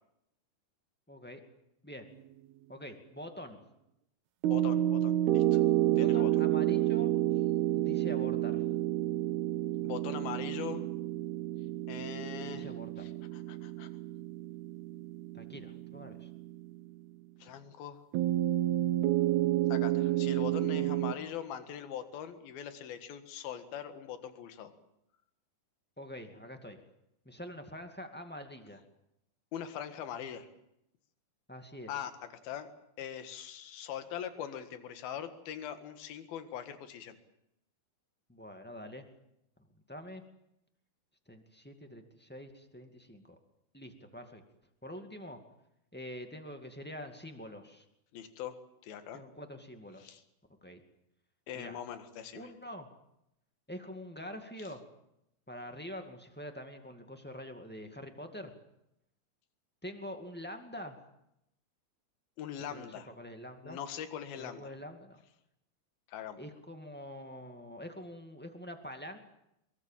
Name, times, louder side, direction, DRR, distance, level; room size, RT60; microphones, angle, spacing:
voice 1, 1.1-1.4 1.8-2.1 2.7-3.6 5.9-7.1 7.7-8.6 12.5-13.0 15.3-16.3 26.0-26.8 27.2-28.8 31.5-31.9 38.3-39.0 39.9-40.2 41.3-43.4 43.7-44.4 44.8-45.4 45.9-47.8 49.1-50.2 50.6-50.8 51.5-51.8 52.3-52.9 53.7-54.8 55.5-58.5 59.8-61.0 62.7-62.9 63.2-63.8 64.4-65.2 66.4-69.2, equal, 5° left, 5 dB, 0.8 m, -45 dB
sound 1, 4.4-16.9 18.1-21.1, right 14 dB, 90° right, 3.1 m, -30 dB
voice 2, 4.5-5.6 6.0-6.3 9.8-10.9 11.9-13.9 17.4-18.0 19.7-24.7 29.5-30.5 31.9-32.1 32.4-32.7 33.0-37.2 48.1-48.6 48.8-49.2 50.0-50.2 51.5-52.5 62.4-63.1 63.6-64.7 66.1-66.4, left 9 dB, 75° left, 9 dB, 3.5 m, -42 dB
23.5 x 23.0 x 7.4 m, 0.81 s
omnidirectional pair, 4.4 m